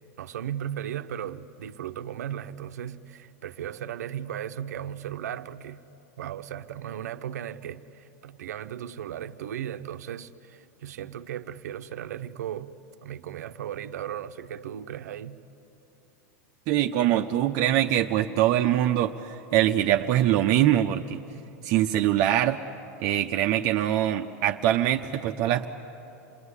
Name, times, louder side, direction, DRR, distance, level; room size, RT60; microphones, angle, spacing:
voice 1, 0.2-5.8 6.2-12.7 13.0-15.4, right 10 dB, 90° right, 0.9 m, -36 dB
voice 2, 16.7-21.2 21.6-22.6 23.0-25.6, right 12 dB, 50° right, 0.8 m, -23 dB
27.5 x 20.5 x 9.8 m
supercardioid pair, 130°, 9 cm